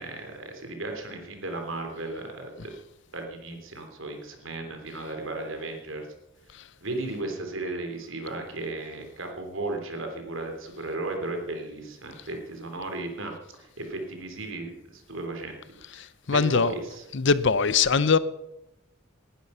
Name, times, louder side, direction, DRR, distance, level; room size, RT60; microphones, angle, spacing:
voice 1, 0.0-2.7 3.1-6.1 6.8-13.3 13.6-15.6 15.9-17.0, right 2 dB, 75° right, 3.4 m, -35 dB
voice 2, 16.3-16.7 17.1-18.2, left 5 dB, 60° left, 0.7 m, -21 dB
19.5 x 11.5 x 5.6 m
head